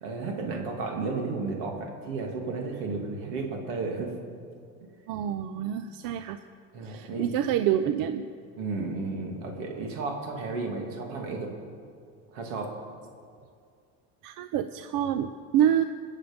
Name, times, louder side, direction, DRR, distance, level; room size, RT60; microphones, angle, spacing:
voice 1, 0.0-4.1 5.5-5.6 6.7-7.3 8.6-11.5 12.3-12.7, right 3 dB, 85° right, 2 dB, 2.4 m, -33 dB
voice 2, 5.1-6.4 6.8-8.3 14.2-15.8, right 10 dB, 65° right, 10 dB, 0.6 m, -27 dB
21.5 x 7.4 x 5.2 m, 2.3 s
supercardioid pair, 90°, 36 cm